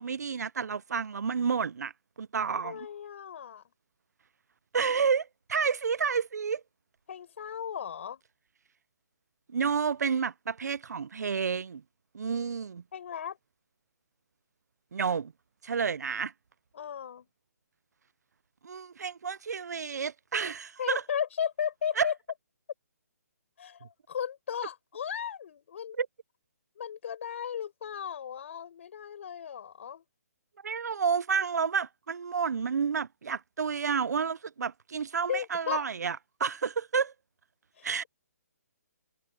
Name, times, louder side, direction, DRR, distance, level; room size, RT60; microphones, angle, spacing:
voice 1, 0.0-2.8 4.7-6.6 9.5-11.8 12.1-12.8 14.9-15.3 15.6-16.3 18.6-21.0 22.0-22.1 26.0-26.1 30.6-37.1 37.8-38.0, right 6 dB, 85° right, 0.5 m, -30 dB
voice 2, 2.5-3.6 7.1-8.2 12.9-13.4 16.7-17.3 20.8-22.1 23.6-26.0 26.8-30.0 35.3-35.8 37.8-38.1, left 8 dB, 50° left, 5.4 m, -35 dB
hypercardioid pair, 165°, 9 cm